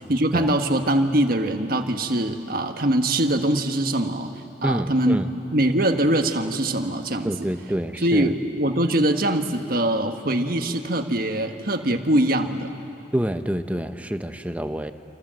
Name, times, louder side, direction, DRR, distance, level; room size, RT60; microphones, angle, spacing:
voice 1, 0.1-4.3 4.6-5.2 5.5-7.3 8.0-12.7, right 1 dB, 55° right, 5 dB, 1.5 m, -22 dB
voice 2, 4.6-5.3 7.2-8.3 13.1-14.9, right 1 dB, 10° right, 8 dB, 0.9 m, -27 dB
29.5 x 26.5 x 7.7 m, 2.7 s
head